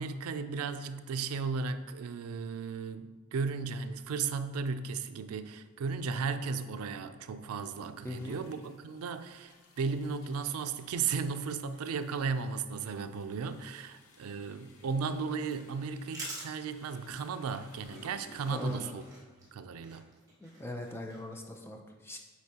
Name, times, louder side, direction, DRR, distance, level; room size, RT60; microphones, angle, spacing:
voice 1, 0.0-19.0 19.5-20.1, right 5 dB, 85° right, 10 dB, 0.4 m, -35 dB
sound 1, 5.9-6.0 7.4-18.9, left 2 dB, 85° left, 0.9 m, -59 dB
voice 2, 8.0-8.4 18.5-19.0 20.4-22.2, left 1 dB, 10° left, 3 dB, 0.5 m, -41 dB
sound 2, 14.7-21.6, right 1 dB, 15° right, 1.2 m, -49 dB
8.0 x 4.3 x 2.8 m, 1.3 s
head